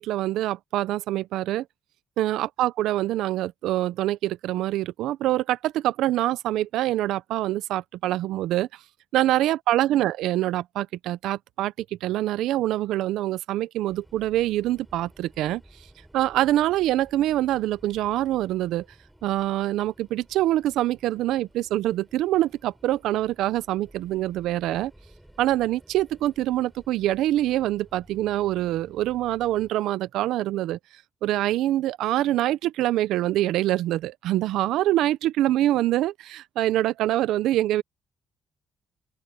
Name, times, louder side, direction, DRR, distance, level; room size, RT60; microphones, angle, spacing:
voice 1, 0.0-1.6 2.2-8.7 9.1-11.7 12.0-15.6 16.1-18.8 19.2-24.9 25.4-30.8 31.2-37.8, right 14 dB, 90° right, 0.5 m, -25 dB
sound 1, 13.9-29.7, right 1 dB, 5° right, 5.0 m, -54 dB
open air
cardioid pair, 90°, 0 cm